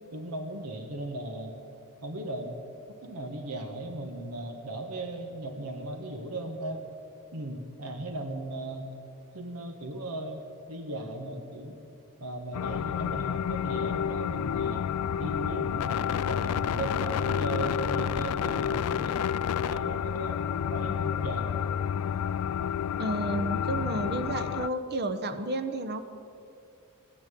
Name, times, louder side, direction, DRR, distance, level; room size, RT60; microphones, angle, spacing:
voice 1, 0.1-1.5 2.0-2.6 3.0-6.8 7.3-8.9 9.3-11.7 12.2-14.9 15.2-19.3 19.6-20.4 20.7-21.5, right 1 dB, 85° right, 5 dB, 1.5 m, -37 dB
sound 1, 12.5-24.7, left 8 dB, 75° left, 0.3 m, -29 dB
voice 2, 23.0-26.0, right 1 dB, 45° right, 10 dB, 0.9 m, -31 dB
15.0 x 10.5 x 9.2 m, 2.6 s
head